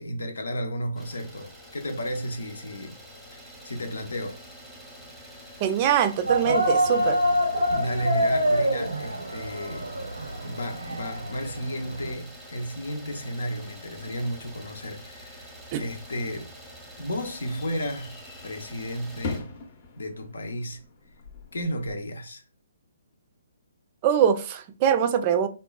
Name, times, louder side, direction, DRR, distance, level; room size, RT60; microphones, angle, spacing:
voice 1, 0.0-3.0 3.3-4.4 7.7-9.9 10.4-16.5 17.0-19.5 20.0-20.8 21.5-22.4, equal, 75° left, 0.7 m, -33 dB
Idling, 1.0-19.4, equal, ahead, 0.7 m, -46 dB
voice 2, 5.6-7.2 15.7-15.8 24.0-25.5, right 8 dB, 35° right, 0.3 m, -23 dB
sound 1, 6.3-12.1, equal, 90° right, 0.5 m, -26 dB
sound 2, 16.6-21.9, left 3 dB, 45° left, 0.7 m, -42 dB
3.6 x 2.2 x 2.2 m
hypercardioid pair, 140°, 0 cm